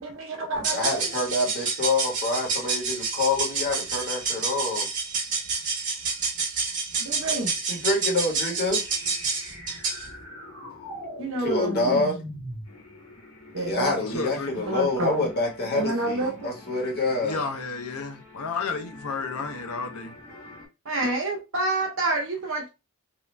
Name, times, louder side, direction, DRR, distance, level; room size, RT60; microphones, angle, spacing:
voice 1, 0.0-0.9 7.0-7.5 11.2-12.1 13.5-14.0 14.7-15.3 15.7-16.3 20.8-22.7, right 2 dB, 60° right, 0.9 m, -28 dB
sound 1, 0.6-10.1, right 4 dB, 35° right, 1.1 m, -29 dB
voice 2, 0.7-4.9 7.7-8.8 11.4-12.1 13.5-17.3, left 2 dB, 45° left, 1.3 m, -26 dB
sound 2, 8.8-20.6, left 2 dB, 70° left, 1.4 m, -41 dB
voice 3, 14.0-14.5 17.2-20.2, left 4 dB, 85° left, 0.7 m, -32 dB
2.8 x 2.4 x 3.2 m
head